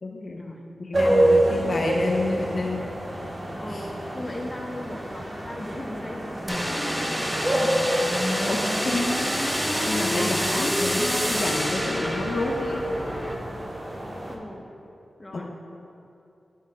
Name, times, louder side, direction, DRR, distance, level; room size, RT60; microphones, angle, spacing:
voice 1, 0.0-2.8 3.7-3.9 8.5-12.8 15.3-15.6, left 2 dB, 60° left, 0 dB, 0.6 m, -30 dB
sound 1, 0.9-14.4, right 1 dB, 35° right, 0.9 m, -28 dB
voice 2, 3.6-7.8 14.3-14.7 15.2-15.6, left 1 dB, 25° left, 0 dB, 1.0 m, -37 dB
sound 2, 6.5-13.4, equal, 5° right, 0.7 m, -27 dB
9.1 x 3.7 x 4.2 m, 2.6 s
cardioid pair, 55°, 0 cm